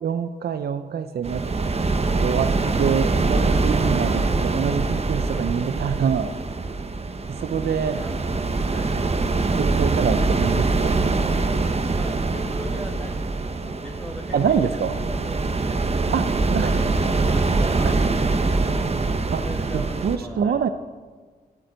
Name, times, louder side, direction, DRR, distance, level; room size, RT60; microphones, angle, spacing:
voice 1, 0.0-1.5 2.2-2.5 2.8-6.3 7.3-8.0 9.5-11.0 14.3-15.0 16.1-16.8 17.8-17.9 19.3-20.7, right 7 dB, 70° right, 10 dB, 0.6 m, -25 dB
sound 1, 1.2-20.2, right 3 dB, 40° right, 1.1 m, -23 dB
voice 2, 8.7-9.0 11.9-15.4 15.8-16.0 16.5-18.7 19.4-20.7, equal, 5° left, -2 dB, 1.7 m, -38 dB
13.5 x 9.6 x 8.9 m, 1.5 s
wide cardioid pair, 100°, 17 cm